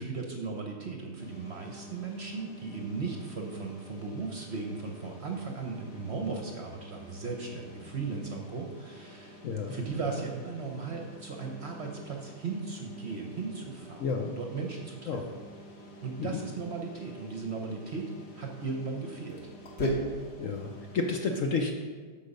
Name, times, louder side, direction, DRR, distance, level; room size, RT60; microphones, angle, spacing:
voice 1, 0.0-15.1 16.0-19.4, right 4 dB, 50° right, 2 dB, 0.9 m, -37 dB
sound 1, 1.2-21.1, equal, 40° left, 1.4 m, -43 dB
voice 2, 9.4-9.7 14.0-14.3 15.1-15.2 16.2-16.3 20.4-21.7, left 4 dB, 60° left, 3 dB, 0.9 m, -30 dB
8.3 x 6.0 x 5.3 m, 1.5 s
omnidirectional pair, 1.9 m